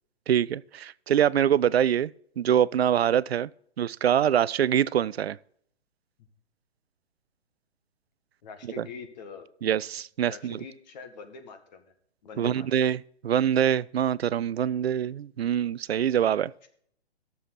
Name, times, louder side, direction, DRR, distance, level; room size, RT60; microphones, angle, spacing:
voice 1, 0.3-3.5 3.8-5.4 8.8-8.9 9.6-10.6 12.4-13.0 13.2-16.5, right 9 dB, 65° right, 0.5 m, -24 dB
voice 2, 8.4-9.5 10.3-11.8 12.2-12.7 16.6-16.7, left 5 dB, 40° left, 1.6 m, -43 dB
14.5 x 7.0 x 4.1 m
figure-of-eight pair, 130°, 33 cm